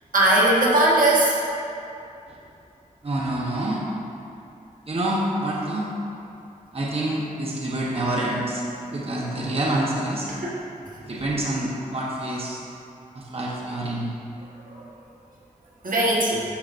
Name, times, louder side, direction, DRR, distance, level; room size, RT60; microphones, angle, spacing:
voice 1, 0.1-1.4 10.3-10.5 14.7-14.9 15.8-16.4, right 1 dB, 85° right, -5 dB, 1.3 m, -19 dB
voice 2, 3.0-3.8 4.9-5.9 6.7-8.6 8.9-10.3 11.0-12.6 13.1-14.2, right 1 dB, 45° right, -4 dB, 1.0 m, -27 dB
11.5 x 5.6 x 2.6 m, 2.6 s
wide cardioid pair, 80°, 14 cm